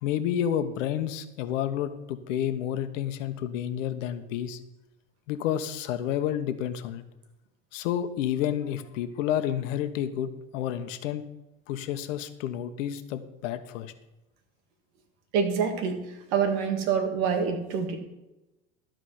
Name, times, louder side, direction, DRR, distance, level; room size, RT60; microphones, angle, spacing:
voice 1, 0.0-4.6 5.3-7.0 7.7-11.2 11.7-13.9, left 10 dB, 75° left, 10 dB, 1.2 m, -30 dB
voice 2, 15.3-16.0 16.3-18.0, right 6 dB, 65° right, 6 dB, 2.5 m, -26 dB
13.5 x 5.1 x 7.9 m, 0.97 s
hypercardioid pair, 100°, 38 cm